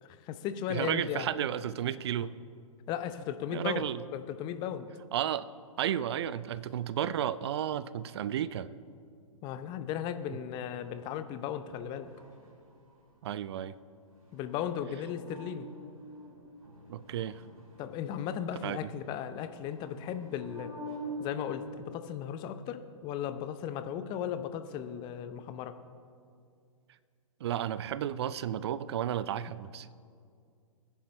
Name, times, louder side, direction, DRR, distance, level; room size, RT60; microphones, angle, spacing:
voice 1, 0.0-1.3 2.9-3.8 4.1-4.9 9.4-12.1 14.3-15.7 17.8-20.7 21.2-25.7, left 9 dB, 25° left, 10 dB, 0.7 m, -36 dB
voice 2, 0.7-2.3 3.5-4.0 5.1-5.5 5.8-8.7 13.2-13.8 16.9-17.4 18.6-18.9 27.4-29.9, right 10 dB, 50° right, 16 dB, 0.5 m, -33 dB
sound 1, 10.5-11.1 11.6-13.0 14.1-21.8, equal, 85° right, 2.7 m, -46 dB
22.0 x 10.0 x 3.3 m, 2.3 s
figure-of-eight pair, 120°, 18 cm